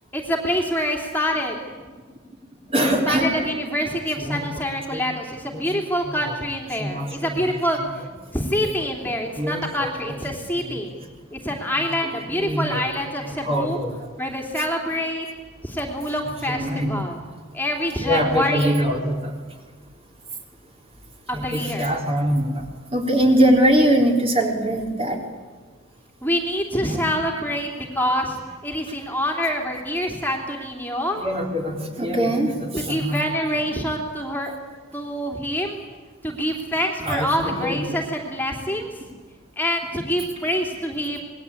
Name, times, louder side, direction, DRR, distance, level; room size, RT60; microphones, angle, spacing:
voice 1, 0.1-1.5 3.1-7.8 8.3-10.9 11.3-13.8 14.2-15.2 15.6-17.2 17.5-18.8 21.3-21.9 26.2-28.4 28.6-31.2 32.7-34.5 34.9-35.8 36.2-38.9 39.6-41.2, equal, 10° left, 1 dB, 3.0 m, -26 dB
voice 2, 2.7-3.7 4.1-5.1 5.5-5.7 6.0-6.4 6.7-7.5 7.7-8.1 8.6-8.9 9.3-10.8 11.7-12.9 13.2-14.1 14.6-15.0 16.1-17.0 18.0-19.3 21.3-22.7 22.9-25.2 26.8-27.1 27.8-27.9 29.7-29.8 30.6-30.7 31.1-33.6 37.0-38.0 38.7-38.8, equal, 25° right, 2 dB, 3.8 m, -24 dB
27.0 x 21.0 x 8.7 m, 1.5 s
head